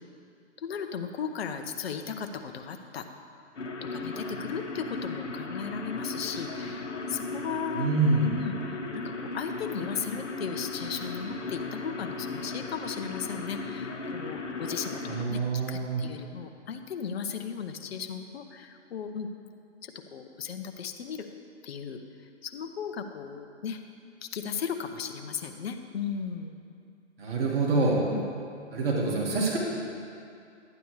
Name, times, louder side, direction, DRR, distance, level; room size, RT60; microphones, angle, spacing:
voice 1, 0.6-3.1 3.8-15.4 15.7-19.3 19.8-21.3 21.6-22.0 22.4-23.8 24.2-26.6 28.1-28.3, left 6 dB, 55° left, 6 dB, 0.8 m, -36 dB
sound 1, 3.5-15.2, left 3 dB, 80° left, 1.2 m, -36 dB
voice 2, 7.7-8.3 15.1-16.0 27.2-28.0 28.7-29.6, right 3 dB, 50° right, -4 dB, 1.9 m, -26 dB
11.5 x 9.0 x 3.2 m, 2.4 s
hypercardioid pair, 135°, 36 cm